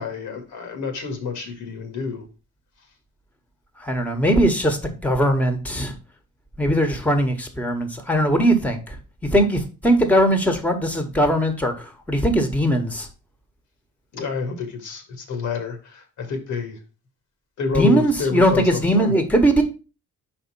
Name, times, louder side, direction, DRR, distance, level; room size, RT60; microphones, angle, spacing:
voice 1, 0.0-2.3 14.1-16.8 17.6-19.1, left 4 dB, 75° left, 5 dB, 2.0 m, -28 dB
voice 2, 3.8-5.9 6.6-9.0 9.3-13.1 17.7-19.6, right 1 dB, 5° left, 6 dB, 1.5 m, -20 dB
5.4 x 4.4 x 5.5 m, 0.32 s
cardioid pair, 90°, 30 cm